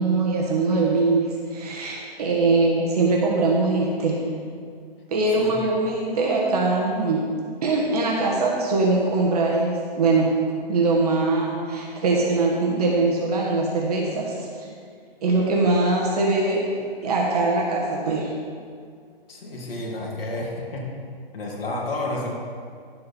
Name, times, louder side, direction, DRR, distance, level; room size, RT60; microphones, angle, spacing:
voice 1, 0.0-4.3 5.1-7.3 7.6-10.4 10.7-14.7 15.2-16.6 17.0-18.3, right 3 dB, 40° right, -2 dB, 1.3 m, -22 dB
voice 2, 19.3-20.9 21.3-22.3, left 2 dB, 65° left, -2 dB, 2.6 m, -30 dB
11.5 x 7.6 x 4.3 m, 2.2 s
hypercardioid pair, 165°, 31 cm